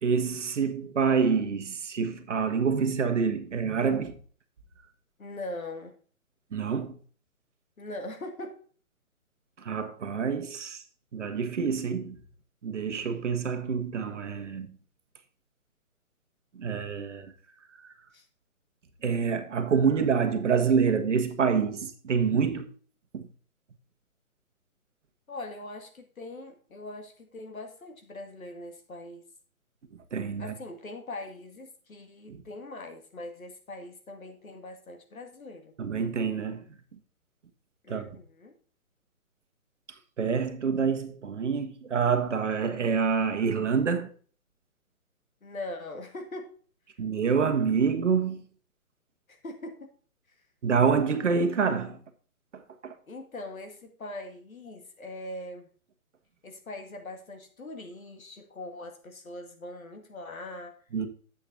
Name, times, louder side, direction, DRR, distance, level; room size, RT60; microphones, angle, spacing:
voice 1, 0.0-4.2 6.5-7.0 9.6-10.8 11.1-12.2 12.6-14.7 16.5-17.3 17.8-17.9 19.0-22.7 23.1-23.3 30.1-30.5 32.3-32.4 35.8-36.6 37.9-38.0 40.2-44.1 47.0-48.4 50.6-52.0 52.5-52.9 60.9-61.1, right 6 dB, 55° right, 1.5 m, -27 dB
voice 2, 5.2-6.0 7.8-8.6 18.1-18.3 25.3-29.2 30.4-35.7 37.8-38.6 45.4-46.6 49.3-49.9 53.0-55.7 56.4-60.8, left 2 dB, 70° left, 2.2 m, -41 dB
9.9 x 8.0 x 2.6 m
figure-of-eight pair, 145°, 43 cm